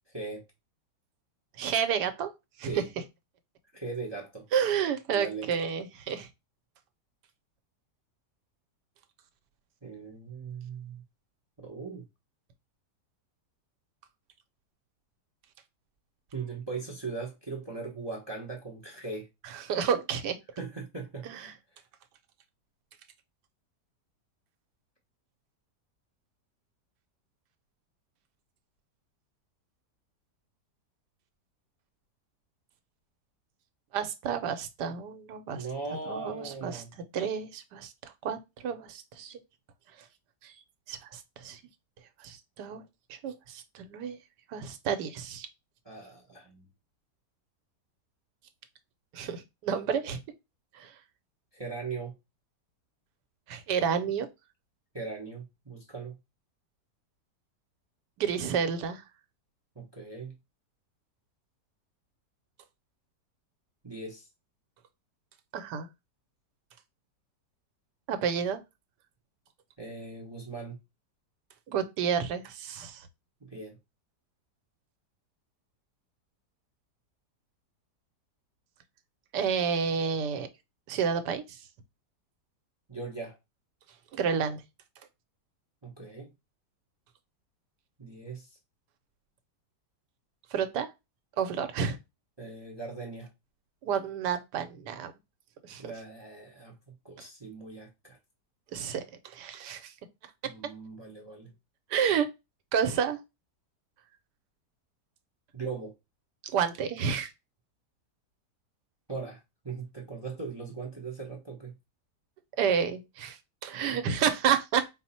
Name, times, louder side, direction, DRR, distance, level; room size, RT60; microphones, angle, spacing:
voice 1, 1.6-2.3 2.6-2.8 4.5-6.3 19.4-20.4 21.2-21.5 33.9-35.6 36.1-39.4 40.4-40.5 40.9-41.6 42.2-42.8 43.1-44.2 44.5-45.5 49.1-50.2 50.7-50.9 53.5-54.3 58.2-59.0 65.5-65.9 68.1-68.6 71.7-73.1 79.3-80.5 80.9-81.6 84.1-84.6 90.5-90.9 91.4-92.0 93.8-95.1 95.6-95.9 97.2-97.3 98.7-99.9 100.4-100.5 101.9-102.3 102.7-103.2 106.5-107.3 112.6-114.8, right 7 dB, 85° right, 1.2 m, -30 dB
voice 2, 3.7-4.4 5.1-5.5 9.8-11.0 11.6-12.0 16.3-19.3 20.6-21.3 35.5-36.9 45.8-46.7 51.5-52.1 54.9-56.1 59.8-60.3 63.8-64.3 69.8-70.8 73.4-73.8 82.9-83.4 85.8-86.3 88.0-88.5 92.4-93.3 95.8-96.7 97.0-98.2 100.4-101.5 105.5-105.9 109.1-111.7 113.7-114.0, right 4 dB, 45° right, 0.3 m, -39 dB
4.3 x 2.0 x 4.1 m
omnidirectional pair, 1.8 m